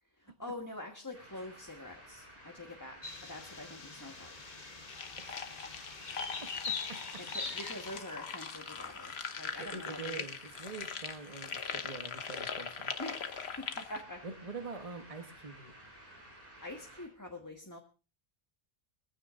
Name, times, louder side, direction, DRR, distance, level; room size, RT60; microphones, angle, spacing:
voice 1, 0.2-4.4 7.2-10.3 13.0-14.2 16.2-17.8, left 1 dB, 20° left, 2 dB, 1.4 m, -45 dB
sound 1, 1.1-17.1, right 1 dB, 60° right, 6.5 m, -54 dB
sound 2, 3.0-8.0, left 5 dB, 50° left, 1.2 m, -42 dB
sound 3, 4.9-14.0, left 6 dB, 85° left, 1.2 m, -41 dB
voice 2, 5.3-5.9 6.7-7.2 9.6-12.9 14.2-15.7, right 4 dB, 35° right, 6 dB, 1.2 m, -45 dB
22.0 x 15.0 x 2.5 m, 0.32 s
omnidirectional pair, 1.0 m